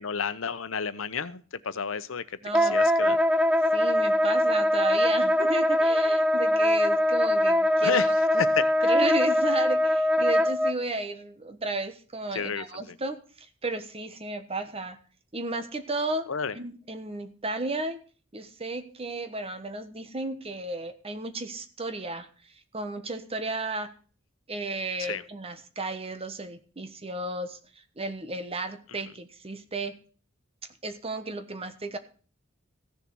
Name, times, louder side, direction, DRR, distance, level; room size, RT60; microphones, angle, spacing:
voice 1, 0.0-2.2 2.5-3.2 7.8-8.1 8.4-8.7 12.3-12.9 16.3-16.5 25.0-25.2, left 6 dB, 85° left, 14 dB, 0.9 m, -31 dB
voice 2, 2.4-3.2 3.7-8.1 8.8-15.0 15.3-16.3 16.5-18.0 18.3-22.3 22.7-23.9 24.5-27.6 28.0-30.0 30.8-32.0, right 2 dB, 30° right, 9 dB, 1.2 m, -33 dB
Wind instrument woodwind instrument, 2.5-10.7, left 1 dB, 5° right, 0.5 m, -22 dB
15.0 x 7.1 x 6.2 m, 0.39 s
head